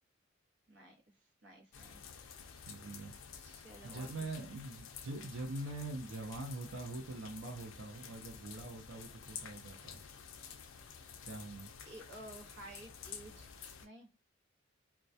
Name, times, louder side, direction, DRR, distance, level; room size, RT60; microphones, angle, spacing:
voice 1, 1.4-2.0 3.4-4.1 4.4-4.5 11.9-13.5 13.8-14.1, right 1 dB, 65° right, 0.9 m, -53 dB
sound 1, 1.7-13.9, left 7 dB, 70° left, 0.4 m, -51 dB
voice 2, 2.5-3.1 3.8-10.0 11.2-11.7, right 2 dB, 85° right, 0.6 m, -44 dB
2.2 x 2.1 x 2.6 m
head